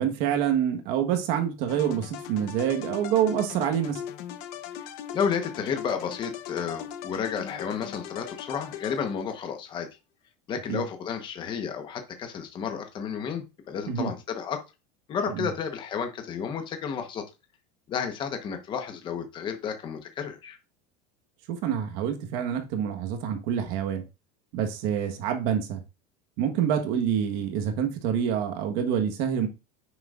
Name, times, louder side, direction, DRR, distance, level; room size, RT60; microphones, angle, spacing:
voice 1, 0.0-4.0 10.7-10.8 13.9-14.1 15.3-15.5 21.5-24.0 24.5-25.8 26.4-29.5, right 9 dB, 50° right, 1.4 m, -27 dB
sound 1, 1.7-9.4, left 10 dB, 50° left, 1.0 m, -39 dB
voice 2, 4.8-9.9 10.5-14.6 15.1-17.2 17.9-20.6, left 7 dB, 25° left, 1.1 m, -32 dB
9.7 x 6.3 x 2.5 m
cardioid pair, 175°, 19 cm